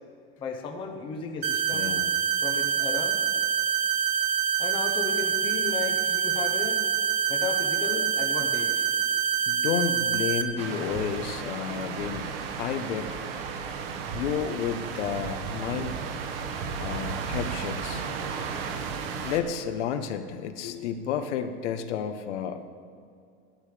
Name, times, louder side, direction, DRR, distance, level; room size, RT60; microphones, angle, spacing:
voice 1, 0.4-2.0 2.4-3.2 4.6-6.8 7.3-8.9, left 5 dB, 15° left, 2 dB, 0.7 m, -34 dB
sound 1, 1.4-10.4, right 7 dB, 20° right, 0.5 m, -26 dB
voice 2, 1.7-2.1 9.5-12.3 12.6-13.1 14.1-16.0 16.8-18.4 19.2-22.7, left 8 dB, 75° left, 9 dB, 1.1 m, -31 dB
sound 2, 10.6-19.4, right 5 dB, 55° right, 1.2 m, -34 dB
13.0 x 12.0 x 5.0 m, 2.3 s
supercardioid pair, 170°, 36 cm